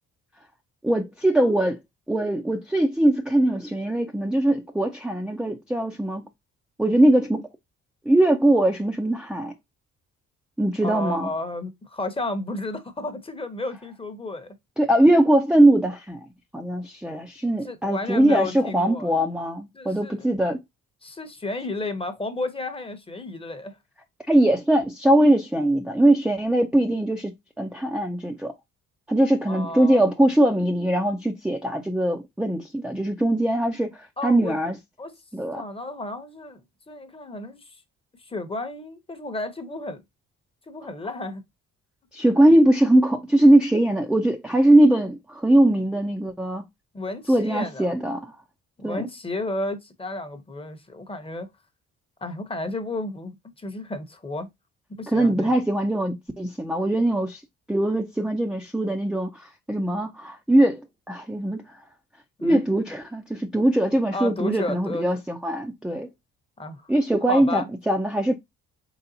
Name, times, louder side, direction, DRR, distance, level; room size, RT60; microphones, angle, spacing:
voice 1, 0.8-1.8 2.1-6.2 6.8-7.5 8.1-9.5 10.6-11.3 14.8-16.2 16.5-20.6 24.3-27.3 27.6-28.5 29.1-34.8 35.3-35.6 42.1-46.6 47.3-48.3 48.8-49.1 55.1-57.4 57.7-61.6 62.4-66.1 66.9-68.4, right 1 dB, 5° right, 0.5 m, -21 dB
voice 2, 10.8-14.6 17.6-19.1 19.7-20.3 21.0-23.8 29.5-30.1 34.2-34.6 35.0-35.1 35.5-37.8 38.2-40.0 40.7-41.4 46.9-48.0 48.8-51.5 52.2-54.5 54.9-55.5 62.4-62.6 64.1-65.2 66.6-66.9 67.3-67.7, left 2 dB, 20° left, 0.9 m, -32 dB
4.0 x 3.3 x 2.7 m
cardioid pair, 90°, 30 cm